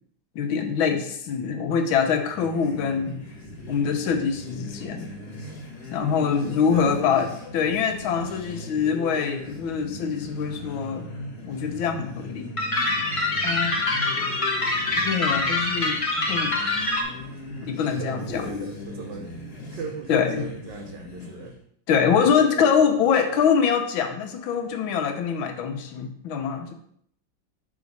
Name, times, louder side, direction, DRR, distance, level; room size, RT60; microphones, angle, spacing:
voice 1, 0.3-3.1 3.7-5.1 5.9-7.3 7.5-11.1 11.5-12.5 13.4-13.8 15.0-16.5 17.6-18.7 20.1-20.5 21.9-26.7, left 6 dB, 80° left, 5 dB, 1.6 m, -24 dB
sound 1, 2.1-21.6, left 1 dB, 55° left, 1.8 m, -39 dB
voice 2, 6.0-7.1 18.0-19.3 19.7-21.5 22.2-22.8, right 6 dB, 70° right, 5 dB, 1.3 m, -38 dB
sound 2, 12.6-17.0, left 2 dB, 35° left, 0.5 m, -25 dB
6.1 x 3.8 x 5.2 m, 0.67 s
omnidirectional pair, 2.2 m